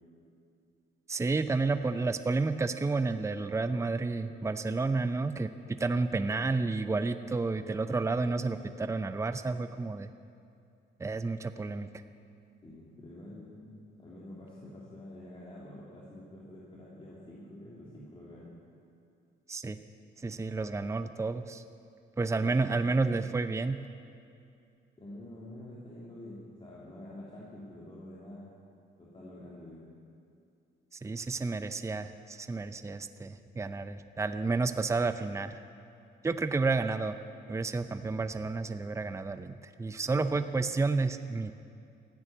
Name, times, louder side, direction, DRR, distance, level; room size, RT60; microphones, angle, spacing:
voice 1, 1.1-5.5 5.8-10.1 11.0-11.9 19.5-19.8 20.2-21.6 22.2-23.8 31.0-35.5 36.2-37.2 37.5-41.5, right 3 dB, 15° right, 10 dB, 0.6 m, -31 dB
voice 2, 12.6-18.5 22.4-23.3 25.0-28.5 29.0-29.8 40.0-40.4, left 1 dB, 25° left, -6 dB, 3.1 m, -47 dB
14.0 x 9.6 x 9.6 m, 2.5 s
cardioid pair, 90°, 20 cm